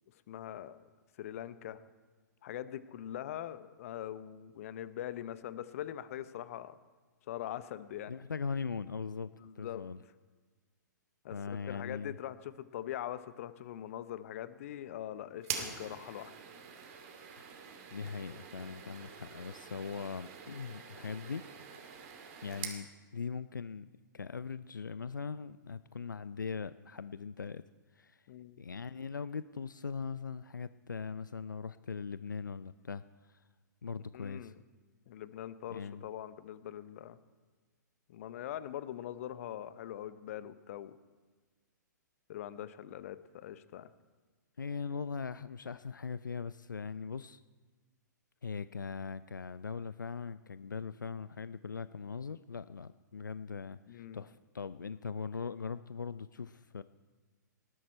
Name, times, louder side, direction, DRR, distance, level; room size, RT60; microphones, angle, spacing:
voice 1, 0.3-0.8 1.2-1.8 2.4-6.8 7.3-8.1 9.4-9.9 11.2-16.3 28.3-28.6 34.1-34.5 35.1-37.2 38.1-40.9 42.3-43.9 53.9-54.2, left 11 dB, 50° left, 15 dB, 0.8 m, -42 dB
voice 2, 8.1-10.0 11.3-12.2 17.4-17.5 17.9-21.4 22.4-23.9 24.1-27.6 27.9-28.2 28.6-33.4 33.8-34.5 35.7-36.0 44.6-47.4 48.4-56.8, left 5 dB, 80° left, 15 dB, 0.4 m, -40 dB
sound 1, 15.4-22.8, right 7 dB, 45° right, 2.4 m, -45 dB
19.5 x 12.5 x 4.3 m, 1.4 s
figure-of-eight pair, 115°, 10 cm